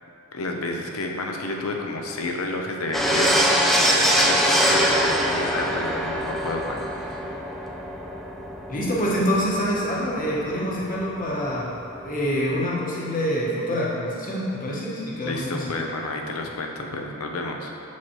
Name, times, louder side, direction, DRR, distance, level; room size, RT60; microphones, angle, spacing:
voice 1, 0.3-7.3 15.2-17.7, left 2 dB, 80° left, 2 dB, 0.7 m, -31 dB
sound 1, 2.9-12.0 12.3-12.5, equal, ahead, 0.5 m, -23 dB
voice 2, 8.7-11.7 12.0-15.6, equal, 40° left, -5 dB, 1.3 m, -26 dB
7.3 x 6.1 x 3.0 m, 2.8 s
head